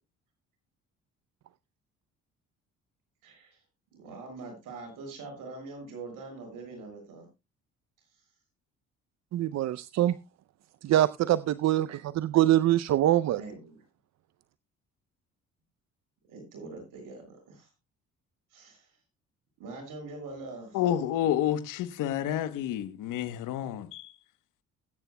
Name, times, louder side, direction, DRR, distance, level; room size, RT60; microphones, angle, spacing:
voice 1, 3.2-3.6 3.9-7.3 13.3-13.8 16.3-17.7 18.5-18.9 19.6-20.8, right 3 dB, 75° right, 6.8 m, -43 dB
voice 2, 9.3-10.1 10.8-13.4, right 13 dB, 55° right, 0.5 m, -24 dB
voice 3, 20.7-24.1, left 11 dB, 75° left, 1.1 m, -29 dB
20.5 x 9.1 x 2.2 m
supercardioid pair, 65°, 32 cm